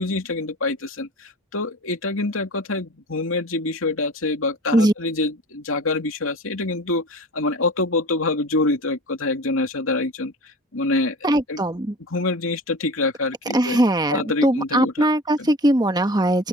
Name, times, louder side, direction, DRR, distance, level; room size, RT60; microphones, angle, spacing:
voice 1, 0.0-10.3 10.7-11.1 11.5-11.6 12.1-13.8 14.1-15.1 15.4-15.5, left 2 dB, 75° left, 2.8 m, -25 dB
voice 2, 11.2-11.9 13.5-16.5, right 1 dB, 20° right, 1.2 m, -20 dB
open air
head